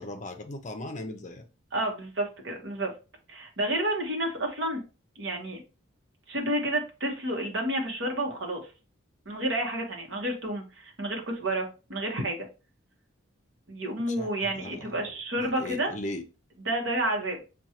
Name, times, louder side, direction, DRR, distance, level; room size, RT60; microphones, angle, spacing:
voice 1, 0.0-1.4 14.1-15.1 15.4-16.2, left 1 dB, 35° left, 6 dB, 0.5 m, -38 dB
voice 2, 1.7-2.9 3.3-4.8 5.2-5.6 6.3-8.6 9.3-12.5 13.7-15.9 16.7-17.4, right 1 dB, 60° right, 1 dB, 1.0 m, -30 dB
6.0 x 2.3 x 2.8 m, 0.31 s
head